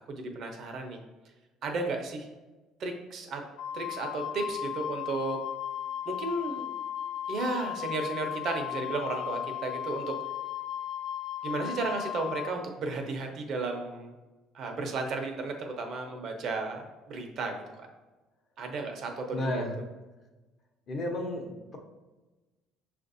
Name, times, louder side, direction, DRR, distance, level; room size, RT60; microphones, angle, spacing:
voice 1, 0.1-1.0 1.6-2.3 2.8-3.4 3.7-5.4 6.1-6.7 7.3-10.1 11.4-14.1 14.5-17.9 18.6-19.7, right 3 dB, 55° right, 3 dB, 0.8 m, -34 dB
Wind instrument woodwind instrument, 3.6-12.5, left 11 dB, 75° left, 0.3 m, -36 dB
voice 2, 19.3-19.7 20.9-21.8, left 1 dB, 50° left, 1 dB, 0.8 m, -32 dB
5.9 x 2.5 x 2.6 m, 1.1 s
supercardioid pair, 95°, 0 cm